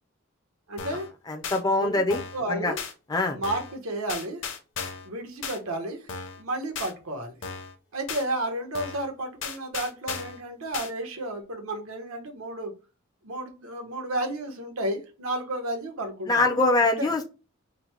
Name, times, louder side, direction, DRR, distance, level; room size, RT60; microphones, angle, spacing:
voice 1, 0.7-1.1 1.7-2.8 3.3-4.4 5.0-6.0 6.4-7.4 7.9-12.7 13.2-17.1, right 1 dB, 80° right, 1.1 m, -32 dB
sound 1, 0.8-1.1 1.4-1.6 2.1-2.4 2.8-2.9 3.4-3.8 4.1-5.1 5.4-5.6 6.1-6.4 6.8-6.9 7.4-7.7 8.1-8.2 8.7-9.1 9.4-10.4 10.7-10.9, left 5 dB, 60° left, 0.8 m, -35 dB
voice 2, 1.3-2.2 2.5-2.7 3.1-3.4 16.3-17.2, left 2 dB, 20° left, 0.5 m, -23 dB
3.9 x 2.1 x 4.4 m
head